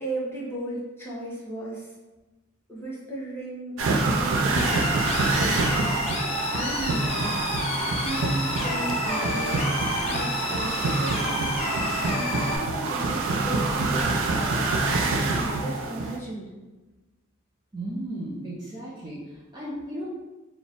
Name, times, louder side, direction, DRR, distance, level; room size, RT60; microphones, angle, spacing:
voice 1, 0.0-1.9 2.7-5.0 5.3-5.6 6.5-7.4 8.0-16.5, right 1 dB, 10° left, -7 dB, 1.1 m, -35 dB
sound 1, 3.8-16.2, right 3 dB, 65° right, 0.5 m, -26 dB
sound 2, 4.6-12.6, left 2 dB, 30° left, 0.6 m, -31 dB
voice 2, 17.7-20.1, right 1 dB, 20° right, -7 dB, 0.6 m, -35 dB
4.1 x 2.3 x 3.5 m, 1.1 s
head